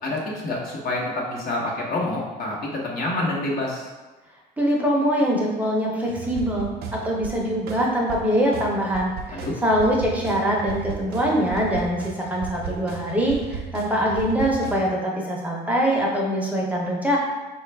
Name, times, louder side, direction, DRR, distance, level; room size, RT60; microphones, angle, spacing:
voice 1, 0.0-3.9 9.3-9.5, left 2 dB, 60° left, -3 dB, 1.0 m, -27 dB
voice 2, 4.6-17.2, equal, 10° right, -3 dB, 0.6 m, -23 dB
sound 1, 6.1-14.9, right 6 dB, 70° right, 0.5 m, -36 dB
4.2 x 2.3 x 3.3 m, 1.2 s
cardioid pair, 110°, 17 cm